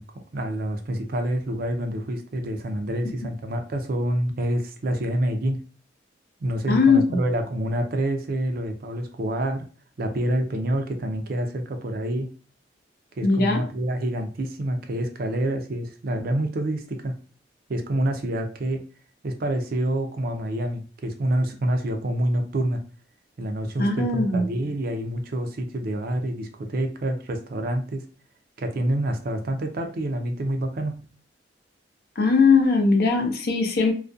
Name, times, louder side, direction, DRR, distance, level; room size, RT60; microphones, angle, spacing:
voice 1, 0.0-5.6 6.4-9.7 10.0-12.3 13.2-17.1 17.7-18.8 19.2-22.8 23.4-28.0 28.6-31.0, right 1 dB, 55° right, 5 dB, 0.4 m, -27 dB
voice 2, 6.7-7.2 13.2-13.6 23.8-24.4 32.2-33.9, left 4 dB, 55° left, 3 dB, 0.5 m, -19 dB
2.3 x 2.2 x 2.5 m, 0.38 s
head